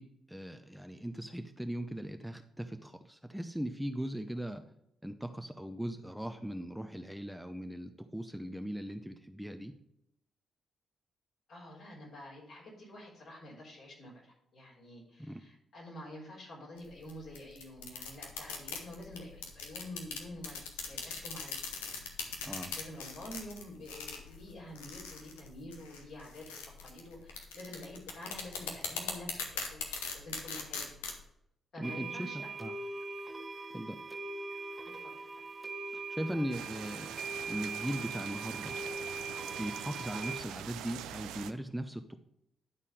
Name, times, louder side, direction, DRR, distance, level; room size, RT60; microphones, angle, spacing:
voice 1, 0.0-4.6 5.0-9.7 15.2-15.4 22.4-22.7 31.8-32.7 33.7-34.0 35.9-37.1 37.5-38.8 39.6-42.2, equal, 5° right, 7 dB, 0.7 m, -39 dB
voice 2, 11.5-21.7 22.7-29.4 29.7-30.9 31.7-32.5 34.8-34.9 35.2-35.4, left 1 dB, 60° left, -3 dB, 3.7 m, -48 dB
sound 1, 16.8-31.2, left 5 dB, 85° left, 0.9 m, -41 dB
sound 2, 31.8-40.4, right 3 dB, 30° right, 1.1 m, -41 dB
sound 3, 36.5-41.5, right 11 dB, 75° right, 0.4 m, -44 dB
11.0 x 4.2 x 4.9 m, 0.79 s
hypercardioid pair, 40°, 0 cm